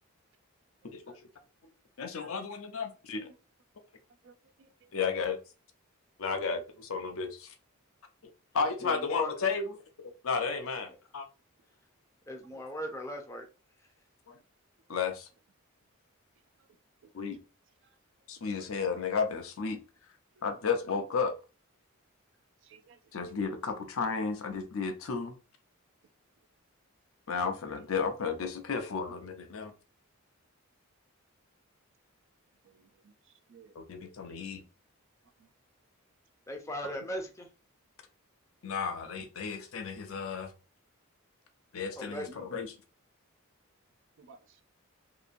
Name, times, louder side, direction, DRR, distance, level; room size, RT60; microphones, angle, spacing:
voice 1, 2.0-3.2 4.9-5.4 6.2-7.5 8.5-9.8 10.2-11.3 14.3-14.4 14.9-15.3 17.1-17.4 18.3-19.8 20.4-21.4 23.1-25.3 27.3-29.7 33.7-34.6 38.6-40.5 41.7-42.7, left 5 dB, 70° left, 0.6 m, -33 dB
voice 2, 4.2-4.9 22.6-23.0 23.3-23.4 27.8-28.0 32.6-33.1 33.5-33.7 35.4-35.5 42.1-42.4 44.2-44.6, right 3 dB, 60° right, 0.4 m, -56 dB
voice 3, 8.8-9.3 12.3-13.5 36.5-37.5 42.0-42.4, equal, 15° left, 0.5 m, -38 dB
2.8 x 2.5 x 2.5 m
head